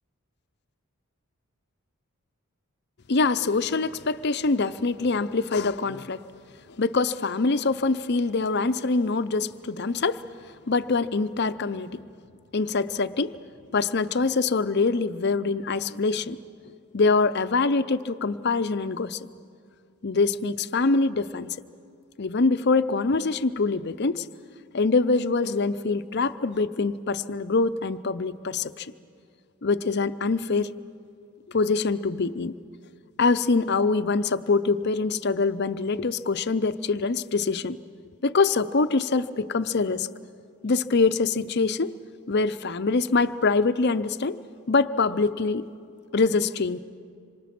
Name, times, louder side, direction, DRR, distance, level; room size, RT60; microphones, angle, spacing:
voice 1, 3.1-6.2 6.8-10.2 10.7-12.0 12.5-13.4 13.7-16.4 16.9-19.2 20.0-21.6 22.2-24.3 24.7-28.9 29.6-30.7 31.5-32.6 33.2-37.8 38.2-40.1 40.6-41.9 42.3-44.4 44.7-45.7 46.1-46.8, left 4 dB, 50° left, 12 dB, 0.6 m, -24 dB
27.0 x 26.0 x 6.0 m, 2.4 s
head